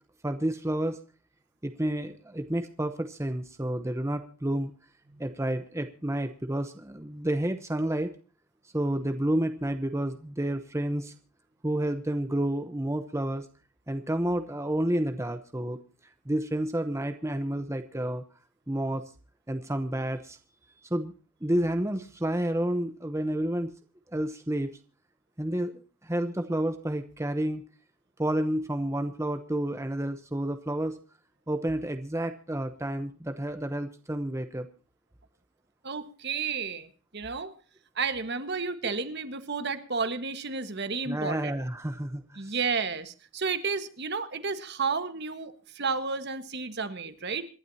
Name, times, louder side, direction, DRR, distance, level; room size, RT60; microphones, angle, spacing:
voice 1, 0.2-1.0 1.6-4.7 5.2-8.1 8.7-11.1 11.6-13.5 13.9-15.8 16.3-18.2 18.7-19.1 19.5-20.4 20.9-21.1 21.4-23.7 24.1-24.7 25.4-27.6 28.2-31.0 31.5-34.7 41.1-42.5, right 1 dB, 15° right, 8 dB, 0.8 m, -30 dB
voice 2, 35.8-37.5 37.9-41.5 42.4-47.5, right 5 dB, 55° right, 10 dB, 1.5 m, -32 dB
26.5 x 12.0 x 2.8 m, 0.38 s
head